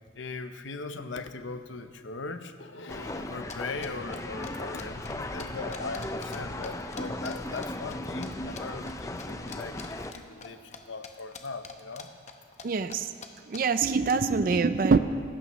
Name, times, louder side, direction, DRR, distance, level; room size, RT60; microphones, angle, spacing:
voice 1, 0.1-12.1, left 3 dB, 75° left, 9 dB, 0.8 m, -39 dB
sound 1, 2.9-10.1, left 1 dB, 15° left, 0.5 m, -37 dB
sound 2, 3.5-6.4 6.6-8.3 8.6-8.9 9.2-10.8 11.0-12.6 12.9-13.0 13.2-13.3 13.5-13.9, left 5 dB, 35° left, 0.9 m, -44 dB
voice 2, 12.6-13.1 13.5-15.0, right 4 dB, 45° right, 11 dB, 0.4 m, -24 dB
25.0 x 12.5 x 3.1 m, 2.2 s
head